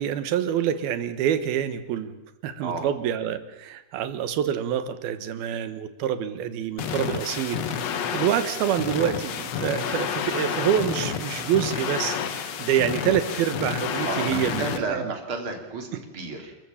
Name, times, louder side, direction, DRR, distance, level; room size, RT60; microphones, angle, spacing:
voice 1, 0.0-2.2 2.4-7.7 8.1-15.0, right 10 dB, 80° right, 12 dB, 3.1 m, -26 dB
sound 1, 6.8-14.8, left 7 dB, 60° left, 1.9 m, -30 dB
voice 2, 14.0-16.6, right 4 dB, 35° right, 4 dB, 3.4 m, -32 dB
30.0 x 14.5 x 7.2 m, 1.0 s
omnidirectional pair, 4.4 m